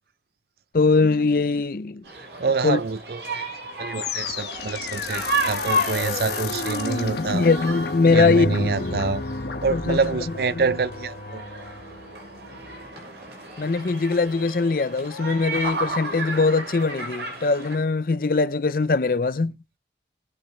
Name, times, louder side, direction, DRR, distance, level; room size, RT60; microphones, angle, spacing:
voice 1, 0.7-2.0 2.6-2.8 7.2-9.0 9.7-10.0 10.5-10.6 13.6-19.5, left 3 dB, 50° left, 0.5 m, -21 dB
sound 1, 2.0-17.8, right 1 dB, 80° right, 6.0 m, -33 dB
voice 2, 2.4-3.5 3.8-7.5 8.1-9.2 9.6-11.4, right 4 dB, 60° right, 0.5 m, -26 dB
sound 2, 3.9-13.1, left 3 dB, 70° left, 1.1 m, -31 dB
19.5 x 6.8 x 3.2 m
head